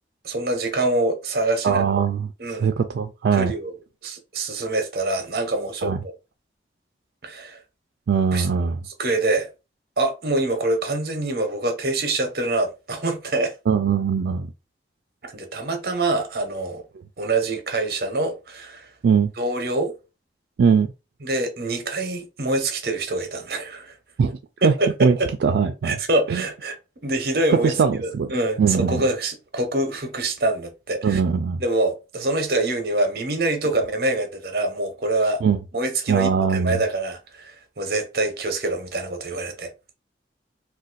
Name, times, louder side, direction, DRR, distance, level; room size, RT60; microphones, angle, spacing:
voice 1, 0.2-1.8 2.4-2.7 3.3-3.7 4.0-5.9 7.2-7.6 8.3-8.5 8.9-9.5 10.0-13.5 15.2-16.8 17.2-18.9 19.4-19.9 21.2-24.0 24.6-25.3 25.8-26.8 27.0-27.7 28.0-31.2 31.6-35.4 35.7-39.7, right 2 dB, 55° right, 0.7 m, -25 dB
voice 2, 1.6-3.5 5.8-6.0 8.1-8.8 13.7-14.5 19.0-19.3 20.6-20.9 24.2-24.7 25.0-26.0 26.3-26.4 27.6-28.3 28.6-29.0 31.0-31.6 35.4-35.6 36.1-36.8, right 6 dB, 80° right, 0.3 m, -21 dB
2.5 x 2.2 x 3.9 m
head